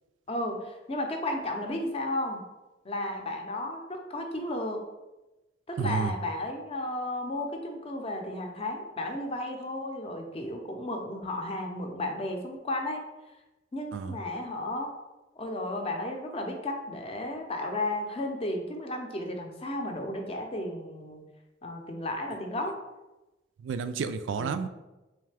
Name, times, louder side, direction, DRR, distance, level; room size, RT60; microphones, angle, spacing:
voice 1, 0.3-2.4 2.8-4.8 5.7-13.0 13.7-14.9 15.4-21.2 21.6-22.7 24.4-24.5, left 1 dB, 30° left, 3 dB, 0.5 m, -33 dB
voice 2, 5.8-6.1 13.9-14.2 23.6-24.7, right 6 dB, 90° right, 10 dB, 0.3 m, -30 dB
3.6 x 3.2 x 3.3 m, 1.0 s
head